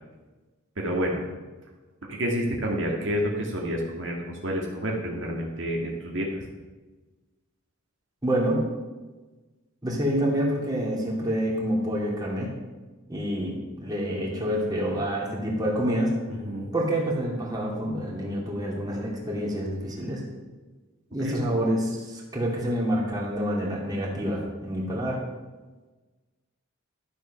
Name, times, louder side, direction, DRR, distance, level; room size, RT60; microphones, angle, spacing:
voice 1, 0.8-1.3 2.1-6.4 16.3-16.7 21.2-21.4, equal, 65° right, -1 dB, 1.8 m, -29 dB
voice 2, 8.2-8.7 9.8-12.5 13.1-16.1 16.7-20.2 21.1-25.2, equal, 20° right, -3 dB, 2.6 m, -27 dB
12.5 x 7.4 x 5.7 m, 1.2 s
head